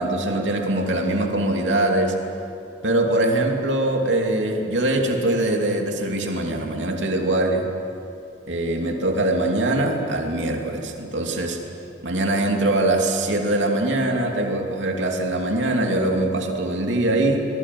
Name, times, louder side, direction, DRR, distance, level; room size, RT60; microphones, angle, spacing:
voice 1, 0.0-2.1 2.8-7.7 8.5-11.6 12.0-17.5, right 1 dB, 80° right, 2 dB, 2.8 m, -22 dB
23.5 x 21.0 x 7.8 m, 2.7 s
head